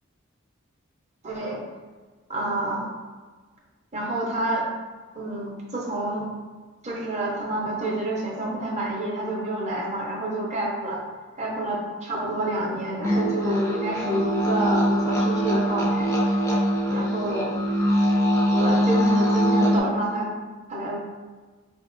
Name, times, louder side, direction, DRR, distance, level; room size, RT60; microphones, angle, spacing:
voice 1, 1.2-1.6 2.3-2.9 3.9-4.6 5.1-6.3 6.8-11.0 11.4-16.1 16.9-17.6 18.5-20.3 20.7-21.0, right 1 dB, 35° right, -2 dB, 0.6 m, -28 dB
sound 1, 13.0-19.8, equal, 15° left, 0.4 m, -22 dB
4.3 x 2.5 x 2.5 m, 1.4 s
head